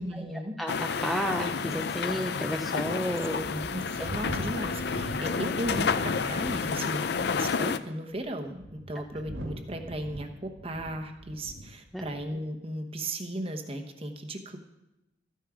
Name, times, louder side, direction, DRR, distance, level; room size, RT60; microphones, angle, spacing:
voice 1, 0.0-0.5 3.5-14.6, right 1 dB, 30° right, 6 dB, 1.0 m, -36 dB
voice 2, 0.6-3.5 4.0-4.1 11.9-12.0, equal, ahead, 3 dB, 0.4 m, -32 dB
sound 1, 0.7-7.8, left 5 dB, 55° left, 0.4 m, -30 dB
sound 2, 1.2-1.3 1.9-2.0 2.7-2.8 3.4-6.7 7.0-7.5 8.2-11.7 12.0-12.3, right 1 dB, 75° right, 2.2 m, -42 dB
13.5 x 9.3 x 4.9 m, 0.96 s
head